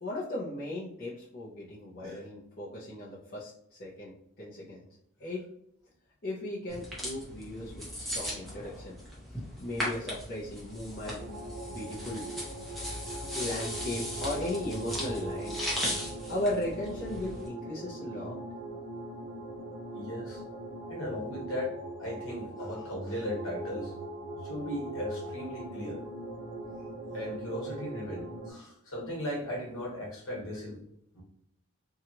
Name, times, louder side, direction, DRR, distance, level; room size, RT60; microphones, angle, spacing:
voice 1, 0.0-4.9 5.2-5.4 6.2-8.9 9.6-11.2 11.7-12.3 13.3-15.6 16.3-18.4, left 1 dB, 45° left, -8 dB, 0.6 m, -36 dB
sound 1, 6.7-17.5, equal, ahead, 0.7 m, -38 dB
sound 2, 11.2-28.5, right 2 dB, 80° right, 0.9 m, -41 dB
voice 2, 19.9-20.4 20.9-23.9 24.4-26.0 27.1-30.8 31.1-31.2, left 1 dB, 70° left, -3 dB, 1.3 m, -37 dB
2.8 x 2.3 x 2.8 m, 0.74 s
head